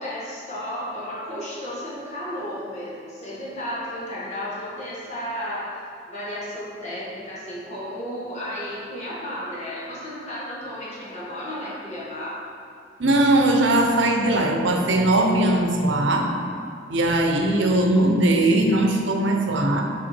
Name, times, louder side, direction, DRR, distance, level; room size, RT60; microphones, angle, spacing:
voice 1, 0.0-5.8 6.1-12.5, equal, 40° left, -7 dB, 1.5 m, -33 dB
voice 2, 13.0-16.3 16.9-19.9, right 1 dB, 75° right, 3 dB, 0.8 m, -20 dB
5.7 x 4.9 x 4.3 m, 2.5 s
head